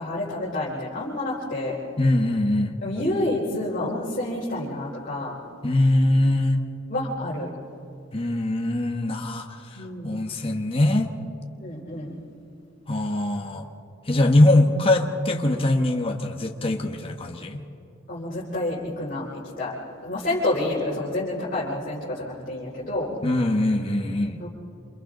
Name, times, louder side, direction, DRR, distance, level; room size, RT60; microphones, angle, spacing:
voice 1, 0.0-1.7 2.8-5.4 6.9-7.5 9.8-10.1 11.6-12.2 18.1-19.7 20.0-23.1 24.4-24.5, left 1 dB, 45° left, -8 dB, 4.3 m, -28 dB
voice 2, 2.0-2.7 5.6-6.6 8.1-9.8 10.0-11.1 12.9-13.7 14.1-17.6 23.2-24.4, left 1 dB, 30° left, 2 dB, 1.3 m, -22 dB
28.5 x 28.0 x 3.9 m, 2.7 s
head